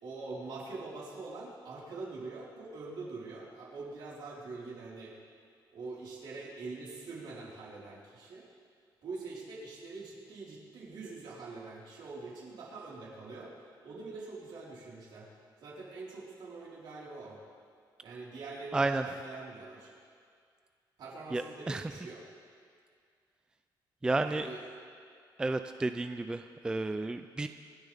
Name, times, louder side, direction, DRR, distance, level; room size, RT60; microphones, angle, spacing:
voice 1, 0.0-5.1 5.7-8.4 9.0-13.5 13.8-15.3 15.6-17.4 18.0-19.9 21.0-22.2 24.2-24.6, right 3 dB, 70° right, -6 dB, 4.5 m, -44 dB
voice 2, 18.7-19.0 21.3-21.8 24.0-24.5 25.4-27.5, right 2 dB, 10° right, 8 dB, 0.4 m, -31 dB
26.5 x 12.0 x 3.5 m, 2.1 s
cardioid pair, 160°, 8 cm